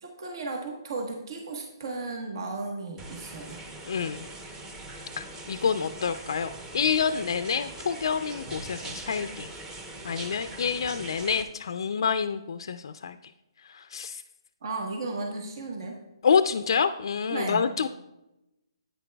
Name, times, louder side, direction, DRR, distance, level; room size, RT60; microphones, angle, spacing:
voice 1, 0.0-3.6 14.6-16.0 17.3-17.7, right 3 dB, 60° right, 1 dB, 1.3 m, -35 dB
sound 1, 3.0-11.4, right 2 dB, 15° right, 0.8 m, -41 dB
voice 2, 3.9-4.2 5.2-9.5 10.0-13.2 13.7-14.2 16.2-17.9, left 6 dB, 65° left, 10 dB, 0.4 m, -27 dB
10.0 x 9.1 x 2.3 m, 0.93 s
hypercardioid pair, 150°, 3 cm